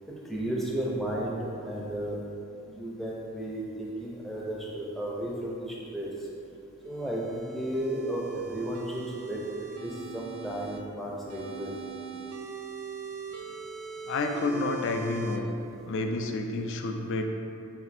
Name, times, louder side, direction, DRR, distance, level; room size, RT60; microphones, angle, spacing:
voice 1, 0.2-2.2 2.7-6.1 6.8-9.4 9.8-11.9, right 1 dB, ahead, -5 dB, 0.5 m, -33 dB
sound 1, 6.9-10.8 11.3-15.4, right 3 dB, 85° right, 0.4 m, -41 dB
voice 2, 14.1-15.5 15.9-17.2, left 2 dB, 55° left, 4 dB, 0.3 m, -30 dB
4.2 x 2.6 x 4.1 m, 2.6 s
head